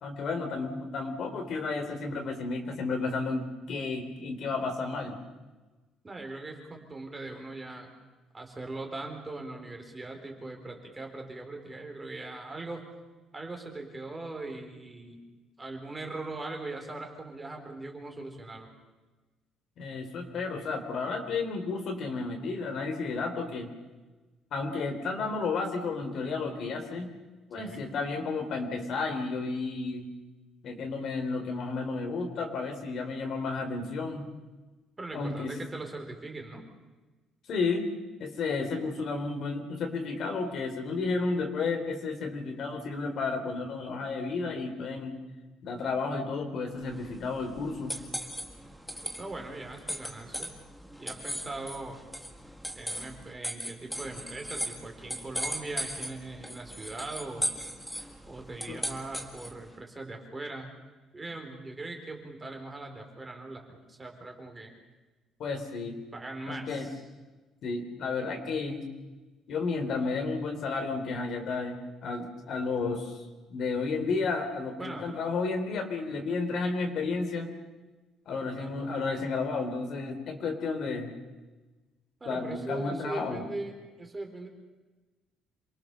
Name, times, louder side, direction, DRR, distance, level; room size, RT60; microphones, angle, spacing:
voice 1, 0.0-5.2 19.8-23.7 24.5-27.1 27.5-30.1 30.6-34.3 35.1-35.5 37.5-37.9 38.2-45.2 45.6-47.9 58.7-58.8 65.4-66.0 66.5-66.9 67.6-68.8 69.5-71.8 72.0-73.2 73.5-77.5 78.3-81.1 82.3-83.4, left 4 dB, 50° left, 4 dB, 3.7 m, -32 dB
voice 2, 6.0-7.9 8.3-12.8 13.3-15.3 15.6-18.7 27.6-27.9 35.0-36.6 49.0-50.5 51.0-52.0 52.8-57.5 58.3-60.7 61.1-64.7 66.1-67.0 74.8-75.1 78.6-78.8 82.2-84.5, right 2 dB, 15° right, 2 dB, 3.9 m, -40 dB
sound 1, 46.8-59.7, equal, ahead, 1.8 m, -38 dB
28.0 x 23.0 x 6.8 m, 1.2 s
cardioid pair, 170°, 0 cm